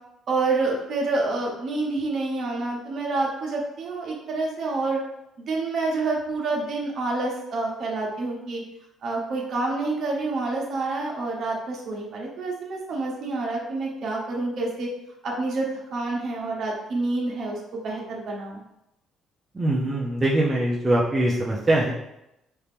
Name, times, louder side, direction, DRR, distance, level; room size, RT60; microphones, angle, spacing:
voice 1, 0.3-5.0 5.4-8.6 9.0-14.9 15.2-18.6, right 3 dB, 45° right, -2 dB, 1.0 m, -28 dB
voice 2, 19.5-21.9, right 1 dB, 15° right, -5 dB, 0.5 m, -22 dB
4.3 x 2.5 x 3.4 m, 0.87 s
cardioid pair, 140°, 0 cm